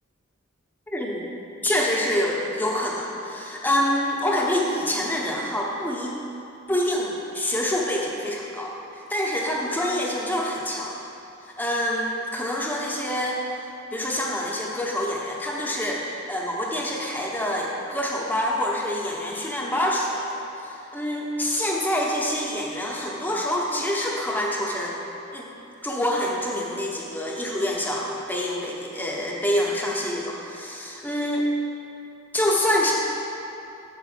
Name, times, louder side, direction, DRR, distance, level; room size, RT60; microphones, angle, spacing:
voice 1, 0.9-1.2 1.6-6.1 6.7-10.9 11.4-13.4 13.9-25.0 25.3-25.5 25.8-31.5 32.3-32.9, left 1 dB, 10° left, -3 dB, 0.9 m, -26 dB
7.9 x 4.9 x 6.7 m, 2.9 s
head